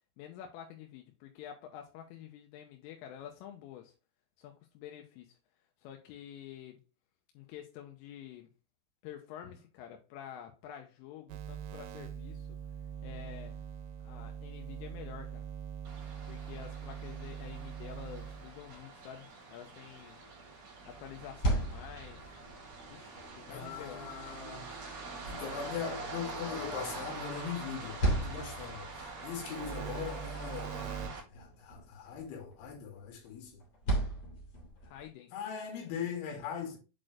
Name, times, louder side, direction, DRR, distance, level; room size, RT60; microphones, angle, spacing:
voice 1, 0.2-3.9 4.4-5.4 5.8-6.8 7.4-8.5 9.0-12.5 13.0-13.6 14.0-15.5 16.3-20.2 20.9-22.3 22.9-24.1 29.4-29.5 34.8-35.4, left 10 dB, 85° left, 3.3 m, -48 dB
sound 1, 11.3-18.8 20.8-22.9 23.4-28.2 28.6-31.1, right 8 dB, 80° right, 3.1 m, -45 dB
sound 2, 15.8-31.2, right 3 dB, 45° right, 2.3 m, -45 dB
sound 3, 21.1-35.1, right 1 dB, 40° left, 2.7 m, -39 dB
voice 2, 23.5-24.7 25.3-33.6 35.3-36.8, left 7 dB, 70° left, 4.1 m, -40 dB
7.6 x 4.3 x 3.2 m
omnidirectional pair, 6.0 m